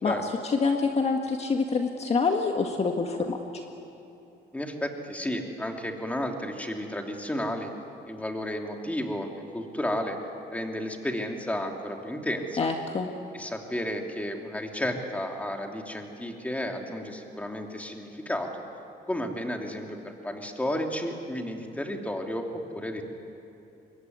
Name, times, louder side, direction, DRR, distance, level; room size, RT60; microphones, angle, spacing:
voice 1, 0.0-3.4 12.6-13.1, left 4 dB, 35° left, 3 dB, 1.8 m, -26 dB
voice 2, 4.5-7.7 8.1-9.3 9.5-10.2 10.5-12.6 13.3-18.6 19.1-23.0, left 1 dB, 10° left, 3 dB, 2.9 m, -32 dB
25.5 x 22.5 x 9.6 m, 2.9 s
cardioid pair, 120°, 18 cm